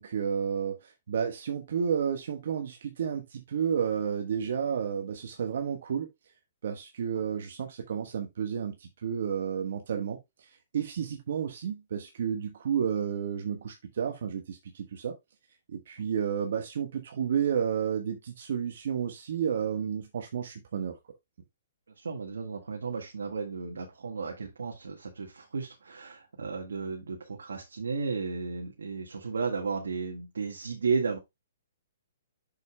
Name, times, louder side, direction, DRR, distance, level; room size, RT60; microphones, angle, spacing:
voice 1, 0.0-6.1 6.6-15.1 15.7-21.0, right 7 dB, 65° right, 1.3 m, -31 dB
voice 2, 22.0-31.2, right 5 dB, 90° right, 1.6 m, -34 dB
8.1 x 6.8 x 2.2 m
hypercardioid pair, 145°, 0 cm